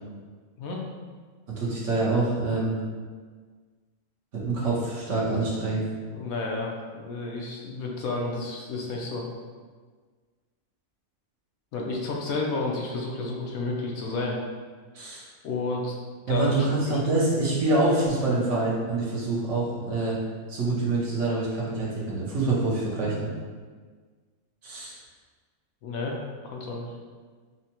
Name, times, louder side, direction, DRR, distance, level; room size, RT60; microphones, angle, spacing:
voice 1, 1.6-2.8 4.3-5.8 14.9-15.3 16.3-20.2 20.5-23.3 24.6-25.0, right 2 dB, 65° right, -5 dB, 1.2 m, -26 dB
voice 2, 6.1-9.3 11.7-14.4 15.4-15.9 16.3-17.0 25.8-26.2 26.4-26.9, left 3 dB, 85° left, -1 dB, 1.1 m, -31 dB
5.6 x 2.1 x 2.9 m, 1.5 s
omnidirectional pair, 1.4 m